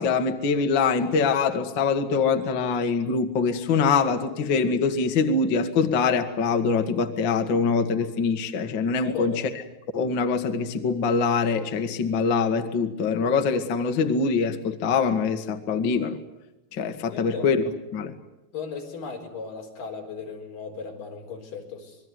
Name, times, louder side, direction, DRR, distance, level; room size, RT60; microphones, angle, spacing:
voice 1, 0.0-9.4 9.9-16.2 16.7-17.6 17.9-18.1, left 5 dB, 65° left, 6 dB, 1.1 m, -24 dB
voice 2, 9.0-9.4 17.1-17.5 18.5-22.0, left 5 dB, 50° left, 2 dB, 5.9 m, -36 dB
26.5 x 22.0 x 9.5 m, 0.92 s
omnidirectional pair, 5.1 m